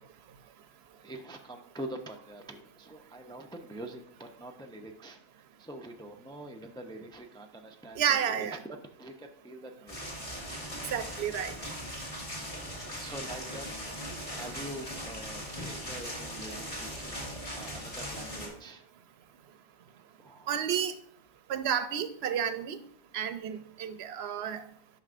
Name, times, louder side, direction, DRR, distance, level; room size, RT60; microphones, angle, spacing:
voice 1, 0.9-10.1 13.0-13.7 14.2-18.8 20.2-20.6, right 1 dB, 5° left, 3 dB, 0.4 m, -45 dB
voice 2, 8.0-8.6 10.9-11.5 20.5-20.9 21.5-22.8 23.1-24.6, right 8 dB, 75° right, 11 dB, 0.8 m, -31 dB
sound 1, 9.9-18.5, equal, 30° left, 2.2 m, -39 dB
11.0 x 5.7 x 2.5 m, 0.69 s
omnidirectional pair, 1.1 m